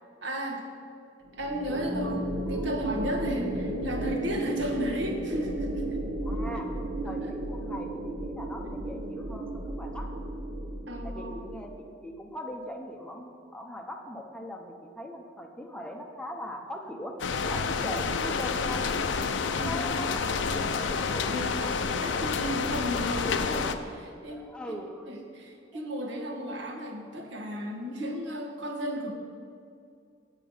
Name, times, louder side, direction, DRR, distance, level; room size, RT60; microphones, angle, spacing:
voice 1, 0.2-0.6 1.3-6.0 7.0-7.3 10.9-11.5 17.6-17.8 19.5-19.9 20.3-20.6 20.9-21.7 22.0-24.8 25.1-29.1, equal, 70° right, 1 dB, 1.5 m, -34 dB
sound 1, 1.3-11.8, right 1 dB, 50° right, 1.1 m, -34 dB
voice 2, 6.2-10.1 11.0-17.1 17.4-19.0 19.6-21.8 24.3-25.1 25.7-25.8 27.5-27.6, equal, 5° left, 2 dB, 0.7 m, -40 dB
sound 2, 17.2-23.7, left 5 dB, 75° left, 0.5 m, -29 dB
8.9 x 8.4 x 5.5 m, 2.4 s
head